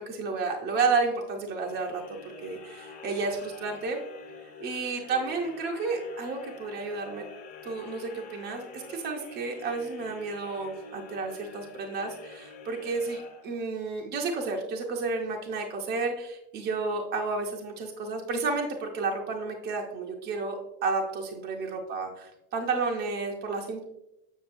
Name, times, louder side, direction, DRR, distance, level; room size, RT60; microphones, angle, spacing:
voice 1, 0.0-2.0 2.4-4.0 4.6-7.2 7.6-23.8, right 4 dB, 25° right, 1 dB, 0.6 m, -31 dB
sound 1, 1.6-13.9, left 4 dB, 20° left, 0.8 m, -47 dB
7.2 x 6.8 x 2.5 m, 0.89 s
supercardioid pair, 145°, 46 cm